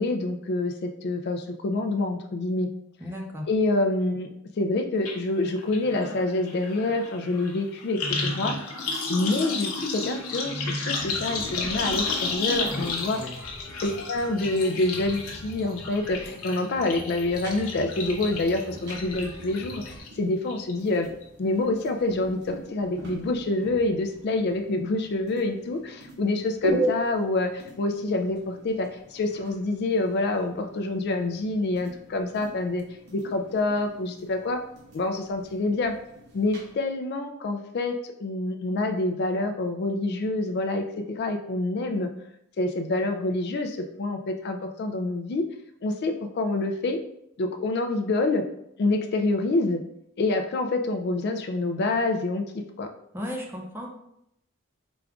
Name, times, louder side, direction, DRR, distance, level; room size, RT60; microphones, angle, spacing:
voice 1, 0.0-2.7 3.5-4.3 4.6-8.6 9.1-13.3 13.8-21.1 21.4-32.8 33.1-34.6 34.9-36.0 36.3-42.1 42.6-45.5 45.8-47.0 47.4-48.4 48.8-49.8 50.2-52.5 52.8-52.9, left 2 dB, 50° left, 6 dB, 0.3 m, -27 dB
voice 2, 3.0-3.5 12.7-12.9 13.1-13.5 53.1-53.9, left 1 dB, 10° right, 0 dB, 0.6 m, -35 dB
sound 1, 5.0-5.2 5.4-20.1 20.5-21.0 21.2-21.3, left 3 dB, 90° left, 0.9 m, -32 dB
sound 2, 11.0-20.0, left 1 dB, 20° left, 1.0 m, -44 dB
sound 3, 17.3-36.7, right 1 dB, 50° right, 0.9 m, -38 dB
5.0 x 2.3 x 3.5 m, 0.77 s
head